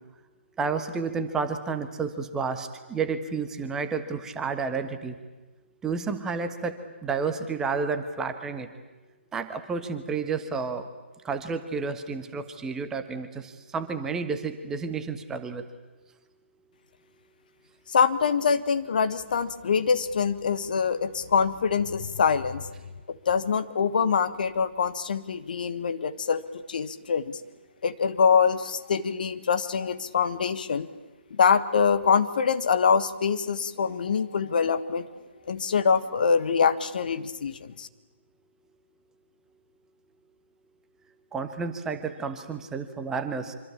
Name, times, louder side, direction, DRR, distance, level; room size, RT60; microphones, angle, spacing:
voice 1, 0.6-5.1 5.8-6.7 7.0-8.7 9.3-10.8 11.2-15.6 41.3-43.5, right 5 dB, 10° right, 8 dB, 1.2 m, -31 dB
voice 2, 17.9-22.7 23.1-27.4 27.8-30.9 31.3-35.1 35.5-37.9, left 6 dB, 45° left, 11 dB, 1.4 m, -24 dB
25.5 x 25.0 x 8.6 m, 1.3 s
figure-of-eight pair, 140°, 6 cm